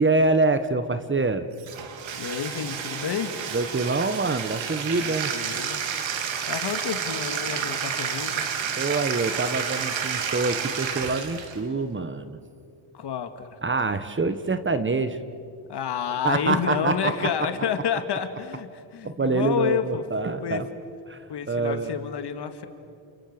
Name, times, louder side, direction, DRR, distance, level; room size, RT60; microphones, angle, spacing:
voice 1, 0.0-1.5 3.5-5.3 8.8-12.4 13.6-15.2 16.2-17.3 19.0-20.7 21.1-21.9, right 3 dB, 25° right, 11 dB, 1.4 m, -25 dB
Bathtub (filling or washing), 1.6-11.6, right 7 dB, 65° right, 2.8 m, -30 dB
voice 2, 2.1-3.5 5.0-5.9 6.5-8.5 12.9-13.6 15.7-20.0 20.4-20.6 21.3-22.7, left 8 dB, 55° left, 8 dB, 2.3 m, -29 dB
29.5 x 27.5 x 6.9 m, 2.4 s
cardioid pair, 90°, 48 cm